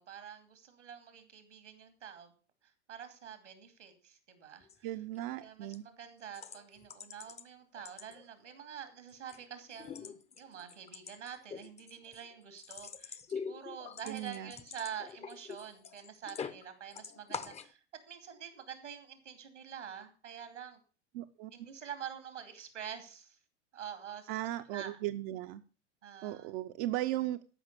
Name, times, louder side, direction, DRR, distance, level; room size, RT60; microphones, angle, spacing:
voice 1, 0.0-2.3 2.9-4.9 5.4-17.8 18.1-20.8 21.5-23.4 23.7-24.4 24.7-25.0 26.0-26.5, right 8 dB, 85° right, 10 dB, 2.7 m, -47 dB
sound 1, 4.6-4.8 5.2-5.4 5.7-5.8 6.3-7.4 7.8-8.5 8.9-9.4 9.7-16.6 16.9-17.7, left 6 dB, 20° left, 0.8 m, -45 dB
voice 2, 4.8-5.9 14.1-14.5 21.1-21.5 24.3-25.6 26.2-27.4, right 14 dB, 50° right, 7 dB, 0.8 m, -37 dB
14.0 x 5.9 x 6.7 m, 0.37 s
hypercardioid pair, 90°, 35 cm